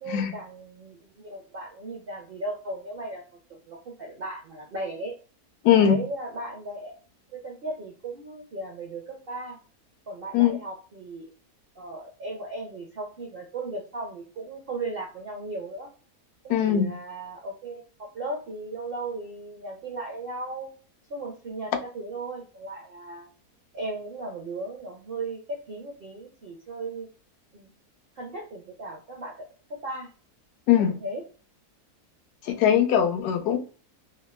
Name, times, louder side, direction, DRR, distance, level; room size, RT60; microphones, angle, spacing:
voice 1, 0.0-3.2 3.7-5.1 5.7-6.9 7.3-9.6 10.1-11.3 11.8-15.9 16.4-20.7 21.1-23.3 23.7-27.1 27.5-27.7 28.1-29.3 29.7-30.1 30.8-31.2, right 2 dB, 70° right, 0.5 m, -36 dB
voice 2, 5.6-6.0 10.3-10.6 16.5-16.9 30.7-31.0 32.4-33.6, left 9 dB, 85° left, 1.1 m, -20 dB
3.5 x 2.2 x 2.2 m
omnidirectional pair, 1.7 m